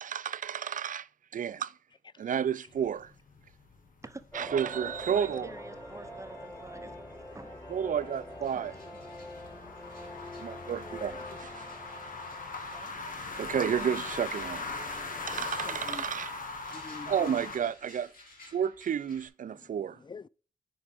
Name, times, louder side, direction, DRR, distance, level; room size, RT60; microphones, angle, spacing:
voice 1, 0.0-1.7 2.2-3.1 4.3-5.5 7.7-8.7 10.4-11.7 13.2-14.9 15.3-16.3 17.1-18.1 18.5-20.0, right 8 dB, 65° right, 0.4 m, -32 dB
sound 1, 2.7-17.6, left 3 dB, 70° left, 1.7 m, -41 dB
voice 2, 4.0-4.5 5.1-7.5 7.8-8.2 8.5-8.8 12.7-12.9, right 2 dB, 20° right, 0.9 m, -48 dB
sound 2, 4.3-13.5, equal, 15° left, 4.3 m, -45 dB
sound 3, 7.7-7.8 8.0-19.3, left 2 dB, 85° left, 3.0 m, -57 dB
voice 3, 15.1-16.1 16.7-17.4 20.0-20.3, left 4 dB, 30° left, 0.4 m, -45 dB
9.9 x 4.7 x 3.6 m
cardioid pair, 45°, 14 cm